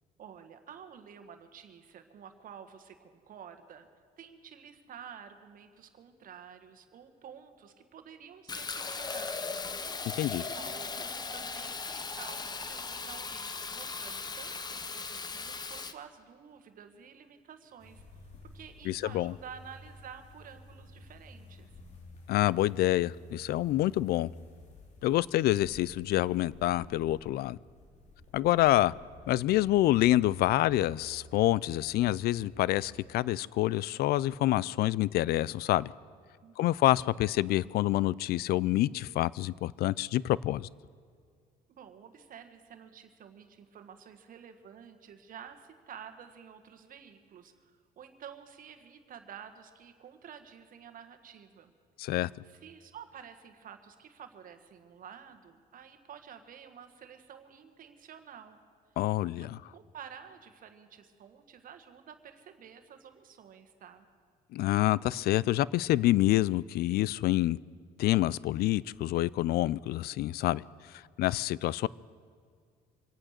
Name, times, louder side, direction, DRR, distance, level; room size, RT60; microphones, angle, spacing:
voice 1, 0.2-3.9 4.2-9.7 10.3-18.0 18.4-21.8 36.4-36.7 41.7-51.7 52.0-52.1 52.4-58.6 59.4-64.1, right 8 dB, 55° right, 8 dB, 1.5 m, -50 dB
Fill (with liquid), 8.5-15.9, left 4 dB, 25° left, 0.8 m, -38 dB
sound 1, 17.8-33.3, left 1 dB, 45° left, 2.8 m, -52 dB
voice 2, 18.9-19.3 22.3-24.3 25.0-27.6 28.3-28.9 29.3-35.9 36.6-40.7 52.0-52.3 59.0-59.6 64.5-67.6 68.0-70.6 70.9-71.9, left 15 dB, 65° left, 22 dB, 0.4 m, -27 dB
25.0 x 8.8 x 6.6 m, 2.1 s
cardioid pair, 110°, 17 cm